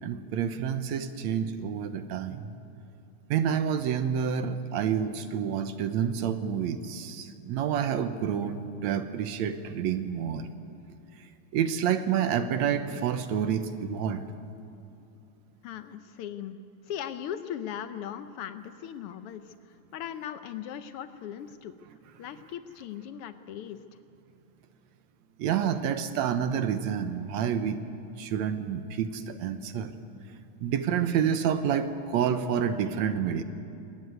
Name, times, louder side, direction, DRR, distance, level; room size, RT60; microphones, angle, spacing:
voice 1, 0.0-2.5 3.3-10.5 11.2-11.3 11.5-14.2 25.4-27.8 28.2-29.9 30.6-33.4, right 8 dB, 70° right, 10 dB, 2.1 m, -28 dB
voice 2, 15.6-16.6 16.8-21.8 22.2-23.8, left 10 dB, 85° left, 10 dB, 1.2 m, -38 dB
21.5 x 18.5 x 9.5 m, 2.9 s
omnidirectional pair, 3.5 m